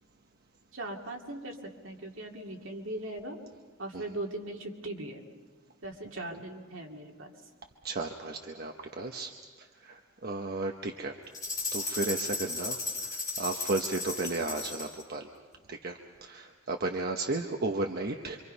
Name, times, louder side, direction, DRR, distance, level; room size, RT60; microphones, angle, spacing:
voice 1, 0.7-3.4 3.8-5.2 5.8-7.3, right 1 dB, 75° right, 1 dB, 2.6 m, -39 dB
voice 2, 7.8-9.3 9.8-11.1 11.7-12.8 13.4-15.3 15.7-18.4, right 2 dB, 50° right, 3 dB, 1.0 m, -34 dB
sound 1, 11.3-15.0, left 3 dB, 20° left, 6.1 m, -35 dB
27.0 x 25.0 x 5.5 m, 1.5 s
head